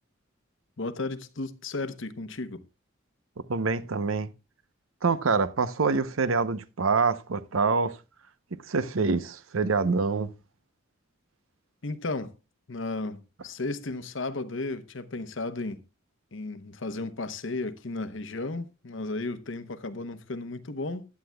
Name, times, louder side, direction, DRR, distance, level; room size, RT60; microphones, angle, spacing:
voice 1, 0.8-2.6 11.8-12.3 12.7-15.8 16.3-21.1, left 2 dB, 60° left, 0.9 m, -34 dB
voice 2, 3.5-4.3 5.0-8.0 8.6-10.3, right 4 dB, 75° right, 0.7 m, -26 dB
15.5 x 10.5 x 2.2 m
head